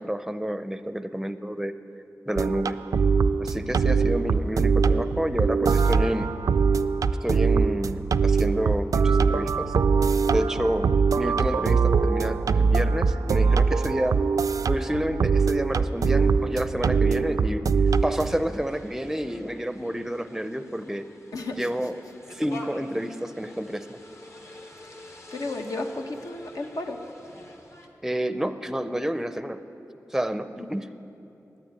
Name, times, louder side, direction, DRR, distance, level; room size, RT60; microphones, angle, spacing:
voice 1, 0.0-1.7 2.3-2.8 3.4-6.3 7.2-9.7 10.3-14.2 14.7-17.7 18.0-21.1 21.5-22.0 22.3-24.0 28.0-29.6 30.1-30.9, equal, 5° right, 11 dB, 0.5 m, -29 dB
sound 1, 2.4-18.4, right 5 dB, 75° right, 0.3 m, -22 dB
sound 2, 17.9-27.9, left 2 dB, 50° left, 1.3 m, -47 dB
voice 2, 21.3-21.7 25.3-27.0 30.6-30.7, left 2 dB, 75° left, 3 dB, 1.1 m, -33 dB
11.0 x 9.3 x 8.9 m, 2.9 s
wide cardioid pair, 75°, 6 cm